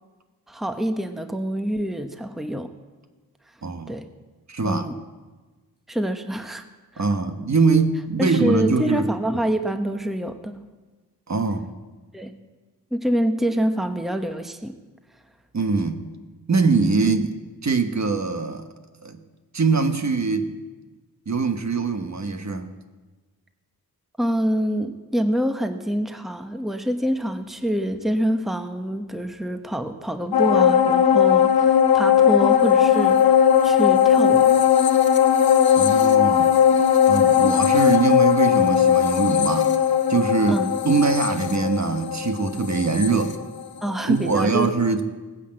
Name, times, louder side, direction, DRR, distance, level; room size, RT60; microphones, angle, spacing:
voice 1, 0.5-2.7 3.9-4.1 4.6-4.9 5.9-6.6 6.9-7.0 8.2-10.7 12.1-12.3 12.9-14.7 24.2-34.6 40.5-40.8 43.8-44.7, equal, ahead, 7 dB, 1.0 m, -26 dB
voice 2, 3.6-3.9 4.5-4.9 7.0-9.1 11.3-11.7 15.5-16.1 16.5-18.7 19.0-19.2 19.5-20.5 21.3-22.8 35.7-36.6 37.1-39.7 40.1-43.4 44.1-45.0, right 4 dB, 50° right, 7 dB, 1.3 m, -22 dB
sound 1, 30.3-44.0 44.4-44.5, left 9 dB, 75° left, 1.1 m, -18 dB
18.0 x 9.8 x 7.7 m, 1.3 s
wide cardioid pair, 80°, 37 cm